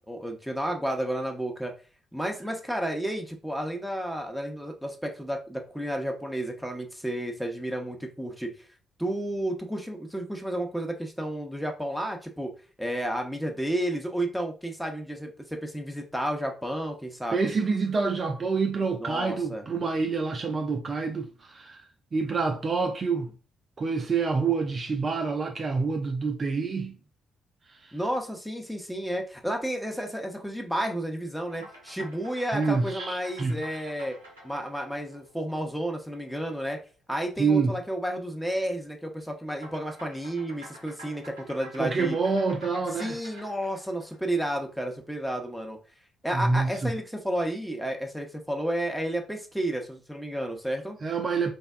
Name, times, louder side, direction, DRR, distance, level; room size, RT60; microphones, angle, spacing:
voice 1, 0.0-1.7 2.1-8.7 9.0-12.5 12.8-17.5 19.0-19.6 27.9-34.2 34.4-36.8 37.1-42.2 43.0-45.8 46.2-51.0, right 1 dB, ahead, 0.7 m, -31 dB
voice 2, 17.3-21.8 22.1-23.3 23.8-27.0 27.8-27.9 32.5-33.6 37.4-37.8 41.8-43.2 46.3-46.9 51.0-51.5, right 4 dB, 40° right, 0.4 m, -27 dB
sound 1, 31.5-36.2 39.5-44.9, right 1 dB, 80° right, 0.7 m, -48 dB
3.4 x 2.2 x 2.3 m
figure-of-eight pair, 40°, 0 cm